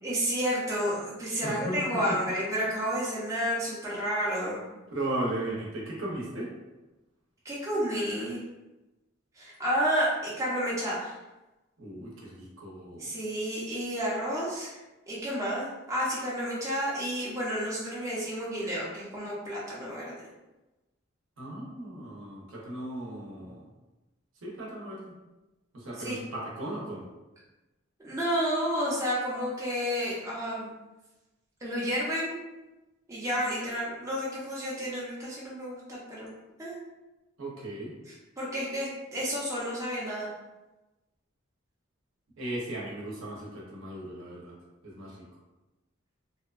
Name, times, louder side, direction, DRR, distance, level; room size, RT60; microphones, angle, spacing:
voice 1, 0.0-4.6 7.4-8.4 9.4-11.1 13.0-14.7 15.1-20.1 26.0-26.2 28.0-30.7 31.6-32.4 33.1-36.3 36.6-36.8 38.4-40.3, equal, 15° right, -7 dB, 0.5 m, -31 dB
voice 2, 1.4-2.2 3.9-4.0 4.9-6.5 11.8-13.1 21.4-23.6 24.4-25.1 25.7-27.1 37.4-38.0 42.4-44.5 44.8-45.3, right 1 dB, 70° right, -3 dB, 0.7 m, -36 dB
2.8 x 2.1 x 2.3 m, 1.1 s
head